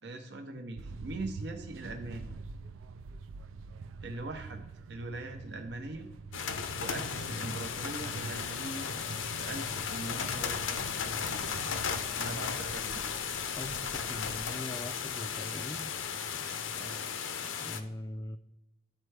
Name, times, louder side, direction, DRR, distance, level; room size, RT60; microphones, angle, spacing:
voice 1, 0.0-2.3 4.0-4.6 4.9-6.1 6.8-8.9 9.4-11.5 12.1-13.2 16.8-17.1, right 2 dB, 60° right, 5 dB, 0.7 m, -41 dB
sound 1, 0.8-14.5, right 4 dB, 90° right, 0.4 m, -46 dB
sound 2, 6.3-17.8, left 7 dB, 85° left, 0.6 m, -35 dB
voice 2, 13.6-15.9 17.6-18.4, left 1 dB, 15° left, 9 dB, 0.3 m, -41 dB
12.5 x 4.4 x 3.3 m, 0.94 s
head